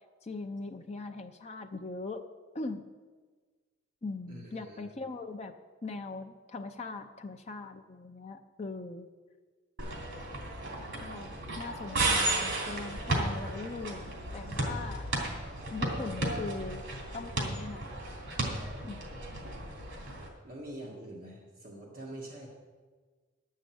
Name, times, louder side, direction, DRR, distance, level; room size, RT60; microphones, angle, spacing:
voice 1, 0.2-2.3 2.5-2.9 4.0-5.6 5.8-9.1 11.0-15.1 15.7-16.9 17.1-18.0 18.8-19.1, left 3 dB, 35° left, 4 dB, 0.5 m, -40 dB
voice 2, 4.3-4.9 11.3-11.6 20.4-22.5, right 1 dB, 45° right, -3 dB, 1.7 m, -45 dB
sound 1, 9.8-20.3, right 2 dB, 80° right, 2.9 m, -34 dB
10.5 x 6.5 x 7.8 m, 1.4 s
head